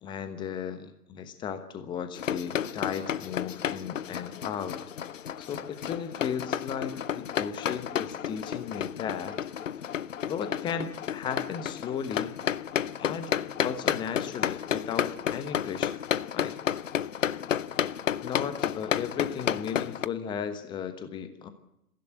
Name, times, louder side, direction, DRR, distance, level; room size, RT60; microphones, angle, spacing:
voice 1, 0.0-4.8 5.4-9.4 10.3-12.3 13.0-13.3 13.6-16.0 16.3-16.5 18.2-21.5, left 7 dB, 10° left, 10 dB, 1.1 m, -35 dB
sound 1, 2.1-20.1, left 9 dB, 55° left, 0.7 m, -32 dB
22.5 x 15.5 x 8.0 m, 0.84 s
figure-of-eight pair, 125°, 47 cm